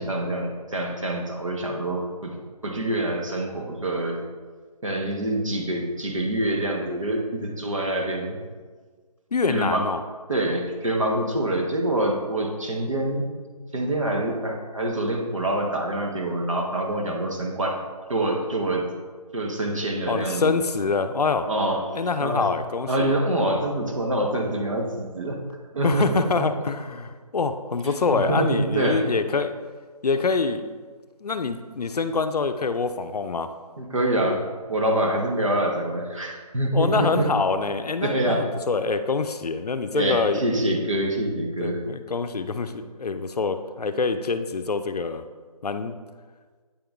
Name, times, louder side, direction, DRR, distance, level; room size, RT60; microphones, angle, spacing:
voice 1, 0.0-2.4 2.6-4.2 4.8-8.4 9.5-9.8 10.3-13.2 13.7-17.8 18.1-18.9 19.3-20.5 21.5-22.5 22.9-25.4 25.7-26.2 27.8-29.1 33.8-37.3 38.0-38.5 39.9-41.8, right 1 dB, 55° right, 1 dB, 1.0 m, -26 dB
voice 2, 9.3-10.0 20.1-21.5 21.9-23.1 25.8-29.5 30.0-30.6 31.2-33.5 36.7-40.4 41.6-45.2 45.6-46.0, left 4 dB, 80° left, 9 dB, 0.5 m, -25 dB
8.5 x 3.8 x 3.4 m, 1.5 s
figure-of-eight pair, 180°, 20 cm